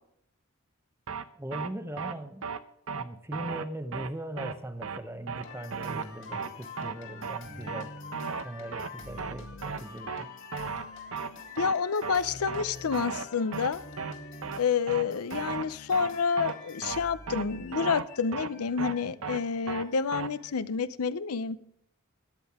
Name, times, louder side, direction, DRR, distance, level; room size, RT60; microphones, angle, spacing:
sound 1, 1.1-1.2 1.5-1.7 2.0-2.1 2.4-2.6 2.9-3.0 3.3-3.6 3.9-4.1 4.4-4.5 4.8-5.0 5.3-5.4 5.7-6.0 6.3-6.5 6.8-6.9 7.2-7.4 7.7-7.8 8.1-8.4 8.7-8.9 9.2-9.3 9.6-9.8 10.1-10.2 10.5-10.8 11.1-11.3 11.6-11.7 12.0-12.2 12.5-12.6 12.9-13.2 13.5-13.7 14.0-14.1 14.4-14.6 14.9-15.0 15.3-15.6 15.9-16.1 16.4-16.5 16.8-17.0 17.3-17.4 17.7-18.0 18.3-18.5 18.8-18.9 19.2-19.4 19.7-19.8 20.1-20.3, right 5 dB, 70° right, 0.8 m, -35 dB
voice 1, 1.3-2.5 2.9-7.9 8.4-10.4, right 1 dB, 10° right, 9 dB, 0.7 m, -40 dB
sound 2, 5.4-20.5, left 3 dB, 55° left, 2.1 m, -46 dB
voice 2, 11.6-13.8 14.6-21.6, left 5 dB, 90° left, 14 dB, 0.6 m, -29 dB
13.0 x 10.0 x 3.6 m, 0.75 s
head